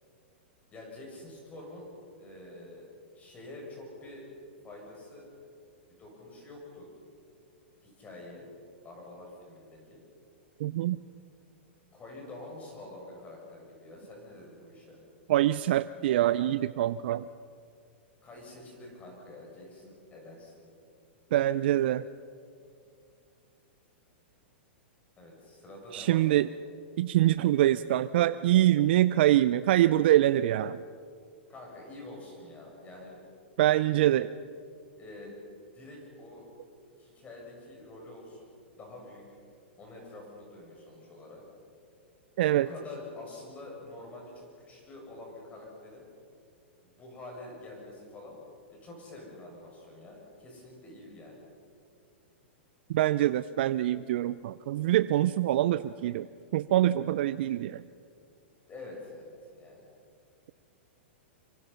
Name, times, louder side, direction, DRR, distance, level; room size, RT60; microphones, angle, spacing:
voice 1, 0.7-1.9 2.2-2.9 3.1-4.3 4.6-5.3 5.9-6.9 7.8-8.5 8.8-10.0 11.9-15.0 18.2-20.5 25.2-26.2 31.5-33.2 33.8-34.2 35.0-35.4 35.7-36.5 37.0-39.4 39.8-41.4 42.5-46.0 46.8-48.4 48.8-51.4 58.7-59.9, left 2 dB, 20° left, -1 dB, 7.3 m, -47 dB
voice 2, 10.6-11.0 15.3-17.3 21.3-22.0 25.9-26.5 27.0-30.8 33.6-34.3 42.4-42.7 52.9-56.3 56.5-57.8, right 13 dB, 60° right, 15 dB, 0.5 m, -24 dB
25.5 x 23.0 x 5.8 m, 2.4 s
hypercardioid pair, 115°, 6 cm